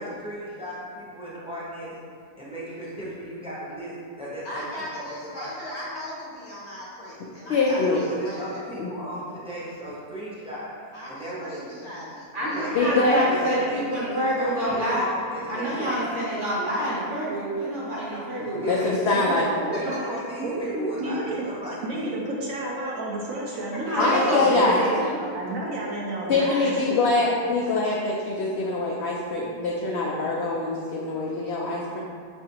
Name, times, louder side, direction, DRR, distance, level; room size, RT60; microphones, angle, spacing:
voice 1, 0.0-2.0 2.4-4.7 5.0-5.5 7.7-10.8 11.1-11.9 12.4-13.9 14.3-16.1 18.6-19.1 19.7-21.2 21.4-22.1, right 1 dB, 5° right, -8 dB, 0.5 m, -35 dB
voice 2, 4.4-8.6 10.9-12.7 19.7-19.8, left 1 dB, 55° left, -6 dB, 0.9 m, -38 dB
voice 3, 7.5-8.0 8.8-8.9 12.7-13.3 18.4-19.5 24.0-24.8 26.3-32.0, left 3 dB, 80° left, -3 dB, 0.5 m, -24 dB
voice 4, 12.3-15.1 15.5-18.9 23.7-25.3, equal, 40° right, -8 dB, 0.9 m, -27 dB
voice 5, 19.1-19.8 20.4-24.9 25.3-26.7, right 1 dB, 70° right, -3 dB, 0.9 m, -31 dB
5.3 x 3.3 x 2.8 m, 2.1 s
omnidirectional pair, 1.7 m